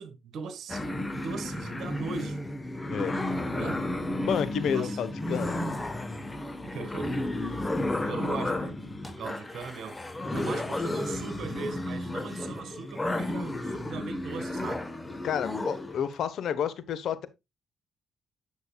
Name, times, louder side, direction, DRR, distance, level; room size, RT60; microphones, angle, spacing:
voice 1, 0.0-2.4 3.5-3.8 4.7-5.0 6.6-7.3 8.0-8.8 9.0-10.0 10.3-14.9, right 5 dB, 70° right, 1.7 m, -39 dB
sound 1, 0.7-16.0, left 1 dB, 15° left, 1.2 m, -32 dB
voice 2, 4.3-5.5 15.2-17.3, left 8 dB, 70° left, 1.0 m, -30 dB
9.5 x 6.8 x 2.3 m
cardioid pair, 90°, 0 cm